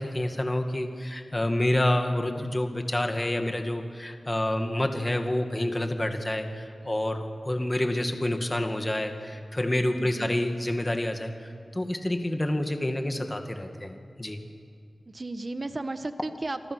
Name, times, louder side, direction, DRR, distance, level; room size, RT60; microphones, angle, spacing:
voice 1, 0.0-14.4, left 1 dB, 20° left, 5 dB, 2.2 m, -28 dB
voice 2, 9.9-10.3 15.1-16.7, right 2 dB, 35° right, 9 dB, 1.4 m, -34 dB
29.0 x 24.5 x 6.4 m, 2.4 s
wide cardioid pair, 100°, 0 cm